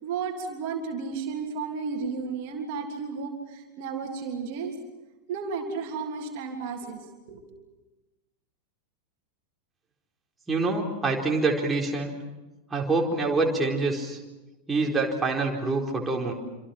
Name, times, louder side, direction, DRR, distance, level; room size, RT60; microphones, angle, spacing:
voice 1, 0.0-4.8 5.3-7.0 7.3-7.5, right 5 dB, 45° right, 2 dB, 3.2 m, -33 dB
voice 2, 10.5-12.1 12.7-14.2 14.7-16.3, right 3 dB, 15° right, -1 dB, 4.4 m, -26 dB
27.5 x 26.0 x 6.0 m, 1.1 s
figure-of-eight pair, 90°, 0 cm